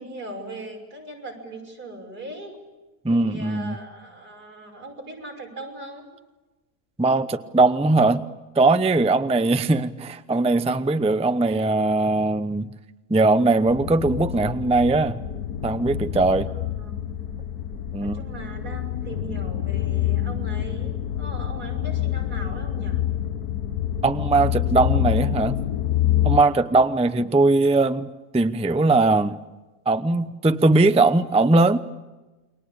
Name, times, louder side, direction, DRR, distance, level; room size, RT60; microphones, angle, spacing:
voice 1, 0.0-2.5 3.1-6.1 9.6-10.1 16.5-17.4 18.0-23.0 27.0-27.3, right 2 dB, 90° right, 6.8 m, -39 dB
voice 2, 3.0-3.8 7.0-8.2 8.6-12.7 13.1-15.2 15.6-16.5 17.9-18.2 24.0-25.6 26.2-28.1 28.3-29.4 29.9-31.8, right 3 dB, 5° right, 0.5 m, -20 dB
sound 1, 13.7-26.4, left 11 dB, 80° left, 1.7 m, -27 dB
29.0 x 23.0 x 8.6 m
omnidirectional pair, 1.6 m